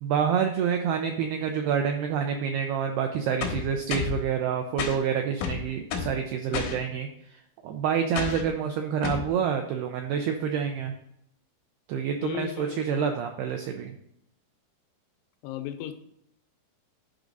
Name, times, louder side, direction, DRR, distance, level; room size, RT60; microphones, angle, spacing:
voice 1, 0.0-10.9 11.9-14.0, right 7 dB, 90° right, 4 dB, 2.2 m, -28 dB
sound 1, 3.4-4.2 4.8-5.0 5.4-6.2 6.5-6.8 8.2-8.5 9.0-9.3, left 6 dB, 70° left, 3.2 m, -30 dB
voice 2, 12.2-13.0 15.4-15.9, left 12 dB, 90° left, 8 dB, 3.1 m, -35 dB
11.0 x 5.1 x 4.0 m, 0.74 s
omnidirectional pair, 5.4 m